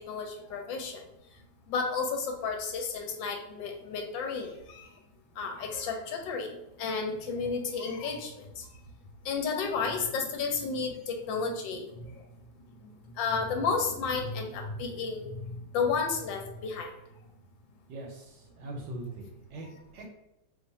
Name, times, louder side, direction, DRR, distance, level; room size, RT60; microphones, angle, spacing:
voice 1, 0.1-1.0 1.7-4.9 5.4-6.5 6.8-8.7 9.2-11.9 13.2-15.4 15.7-16.9, left 5 dB, 75° left, 3 dB, 1.2 m, -32 dB
voice 2, 17.9-20.1, right 1 dB, 70° right, 0 dB, 1.1 m, -41 dB
2.9 x 2.5 x 3.9 m, 0.89 s
omnidirectional pair, 2.2 m